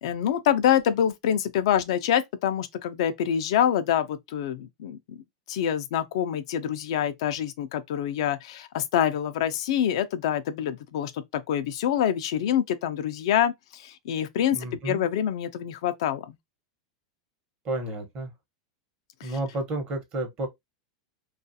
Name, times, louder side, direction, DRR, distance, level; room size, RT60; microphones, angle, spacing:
voice 1, 0.0-5.2 5.5-16.3 19.2-19.3, left 10 dB, 70° left, 0.4 m, -26 dB
voice 2, 14.5-15.0 17.6-18.3 19.2-20.5, right 2 dB, 35° right, 1.0 m, -31 dB
2.4 x 2.3 x 2.6 m
supercardioid pair, 125°, 3 cm